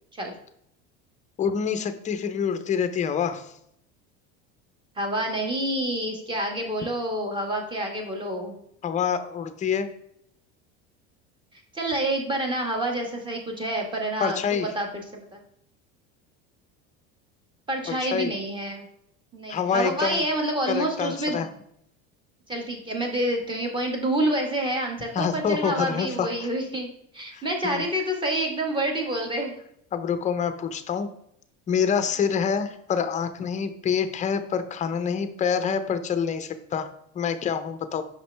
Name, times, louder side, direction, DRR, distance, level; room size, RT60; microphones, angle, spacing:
voice 1, 1.4-3.5 8.8-9.9 14.2-14.7 17.9-18.3 19.5-20.2 20.7-21.5 25.1-26.5 27.3-27.8 29.9-31.1 31.7-36.9 37.1-38.0, left 7 dB, 25° left, 10 dB, 0.5 m, -26 dB
voice 2, 5.0-8.5 11.7-14.9 15.3-15.4 17.7-18.9 19.3-21.5 22.5-29.6, right 1 dB, 15° right, 2 dB, 1.3 m, -28 dB
5.9 x 5.4 x 3.3 m, 0.73 s
cardioid pair, 135°, 30 cm